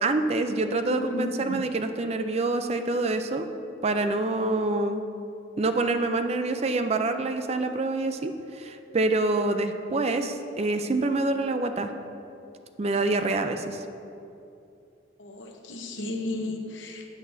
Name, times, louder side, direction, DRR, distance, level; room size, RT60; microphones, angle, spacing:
voice 1, 0.0-3.5 3.8-5.0 5.6-11.9 12.8-13.8, right 2 dB, 35° right, 7 dB, 0.4 m, -26 dB
voice 2, 0.5-1.6 15.2-17.0, left 1 dB, 75° left, 3 dB, 1.0 m, -34 dB
13.5 x 8.1 x 2.7 m, 2.7 s
head